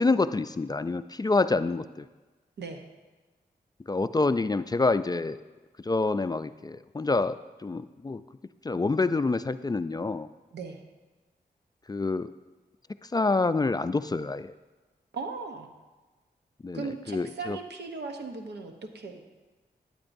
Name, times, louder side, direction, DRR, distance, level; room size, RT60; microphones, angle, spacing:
voice 1, 0.0-2.1 3.9-5.4 5.8-7.4 7.6-8.2 8.6-10.3 11.9-12.3 13.1-14.5 16.6-17.6, left 3 dB, 25° left, 12 dB, 0.3 m, -27 dB
voice 2, 10.5-10.8 15.1-15.7 16.7-19.2, right 4 dB, 85° right, 4 dB, 0.9 m, -38 dB
12.0 x 8.6 x 2.6 m, 1.2 s
cardioid pair, 50°, 17 cm